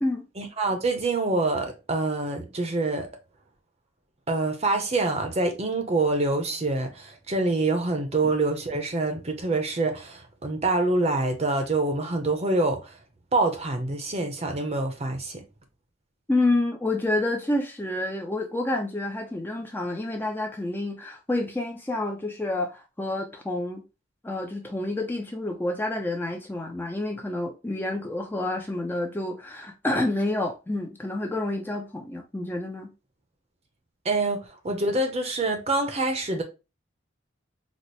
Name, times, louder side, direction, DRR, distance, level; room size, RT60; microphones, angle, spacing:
voice 1, 0.4-3.1 4.3-13.0 13.3-15.4 34.0-34.4 34.6-36.4, right 2 dB, 30° right, 0.6 m, -26 dB
voice 2, 16.3-23.8 24.2-32.9, left 2 dB, 10° left, 0.4 m, -28 dB
4.1 x 2.0 x 3.1 m
head